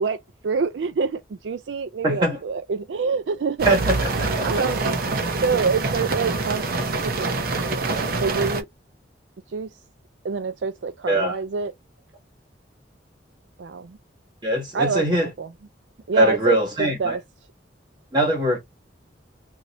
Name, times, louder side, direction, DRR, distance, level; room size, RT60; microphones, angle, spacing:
voice 1, 0.0-3.8 4.4-4.9 5.4-6.7 7.0-7.3 7.7-8.7 9.5-9.7 10.2-11.7 13.6-14.0 14.7-15.5 16.1-17.2, right 5 dB, 80° right, 0.4 m, -26 dB
voice 2, 2.0-2.4 3.6-3.9 4.2-4.5 11.1-11.3 14.4-15.3 16.2-17.1 18.1-18.6, right 1 dB, 25° right, 1.4 m, -21 dB
Car Internal Gentle Rain On Windscreen, 3.6-8.6, right 3 dB, 55° right, 0.8 m, -25 dB
2.7 x 2.7 x 2.9 m
head